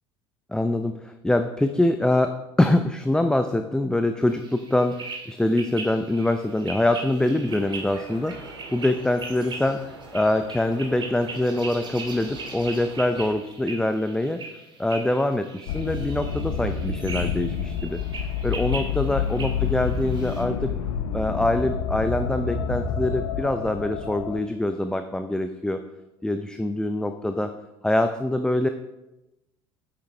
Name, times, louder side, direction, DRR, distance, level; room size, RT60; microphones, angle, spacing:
voice 1, 0.5-9.8 10.1-14.4 14.8-20.7 21.1-25.8 26.2-27.5 27.8-28.7, left 1 dB, 5° left, 8 dB, 0.5 m, -24 dB
sound 1, 4.3-20.4, right 3 dB, 30° right, 2.1 m, -40 dB
sound 2, 7.4-13.3, right 3 dB, 75° right, 1.9 m, -44 dB
sound 3, 15.7-24.4, left 7 dB, 60° left, 0.9 m, -28 dB
9.5 x 8.8 x 3.4 m, 0.98 s
figure-of-eight pair, 65°, 15 cm